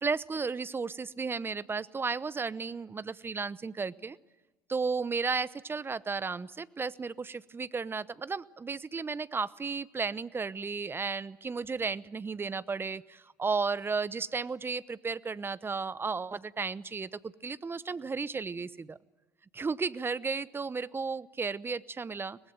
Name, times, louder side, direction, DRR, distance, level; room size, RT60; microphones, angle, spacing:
voice 1, 0.0-4.2 4.7-19.0 19.5-22.4, right 4 dB, 25° right, 18 dB, 0.8 m, -34 dB
24.0 x 19.5 x 9.0 m, 1.2 s
hypercardioid pair, 65°, 9 cm